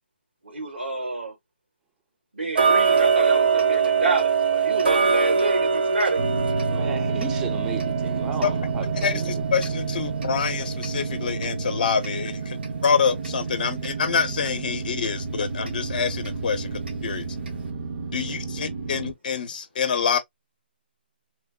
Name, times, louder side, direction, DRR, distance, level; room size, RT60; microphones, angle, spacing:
voice 1, 0.5-1.3 2.4-6.2, right 2 dB, 85° right, 1.3 m, -28 dB
Tick-tock, 2.5-13.4 13.8-13.9 14.4-14.5 15.0-15.1 15.7-15.8 16.2-16.3 16.9-17.0 17.5-17.6, right 6 dB, 65° right, 1.0 m, -24 dB
sound 1, 6.2-19.1, right 4 dB, 50° right, 0.6 m, -30 dB
voice 2, 6.7-9.4, right 7 dB, 10° right, 0.4 m, -36 dB
voice 3, 9.0-12.6 12.8-17.2 18.1-20.2, left 6 dB, 50° left, 0.6 m, -26 dB
3.1 x 2.0 x 2.2 m
figure-of-eight pair, 150°, 6 cm